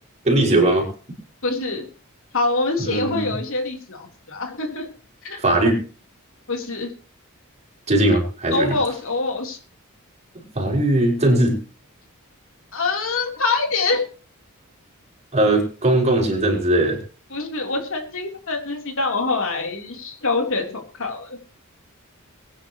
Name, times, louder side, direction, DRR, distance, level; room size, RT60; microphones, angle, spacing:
voice 1, 0.2-0.9 2.8-3.3 5.4-5.8 7.9-8.8 10.3-11.6 15.3-17.0, right 1 dB, 30° right, -1 dB, 5.9 m, -19 dB
voice 2, 1.4-1.9 2.3-4.9 5.2-5.4 6.5-6.9 8.5-9.6 12.7-14.1 17.3-21.4, left 3 dB, 65° left, 2 dB, 3.8 m, -25 dB
23.0 x 10.5 x 3.1 m, 0.38 s
head